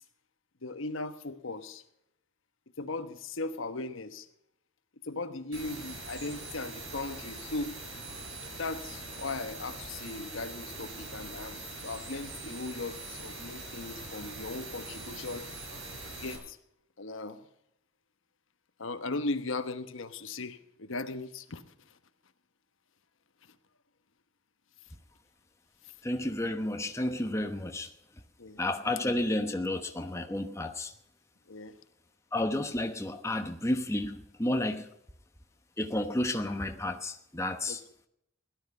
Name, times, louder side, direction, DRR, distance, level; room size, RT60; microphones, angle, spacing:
voice 1, 0.6-1.8 2.8-4.3 5.0-7.8 8.6-15.5 16.2-16.6 17.0-17.4 18.8-21.6 28.4-28.6 31.5-31.8 37.7-37.8, left 3 dB, 65° left, 1.1 m, -38 dB
sound 1, 5.5-16.4, right 2 dB, 70° right, 5.6 m, -43 dB
voice 2, 26.0-27.9 28.6-30.9 32.3-34.9 35.8-37.8, left 1 dB, 15° left, 1.0 m, -31 dB
17.5 x 12.0 x 5.4 m
head